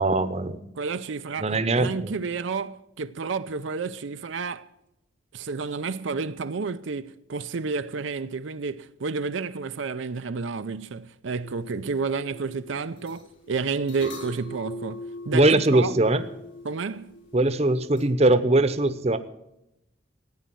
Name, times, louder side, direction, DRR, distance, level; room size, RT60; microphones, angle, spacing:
voice 1, 0.0-0.6 1.4-2.1 15.3-16.2 17.3-19.2, right 2 dB, 35° right, 0.9 m, -21 dB
voice 2, 0.7-4.7 5.3-16.0 16.6-17.1, right 4 dB, 80° right, 0.5 m, -31 dB
sound 1, 11.4-18.0, left 1 dB, 80° left, 5.3 m, -42 dB
15.5 x 9.4 x 7.6 m
head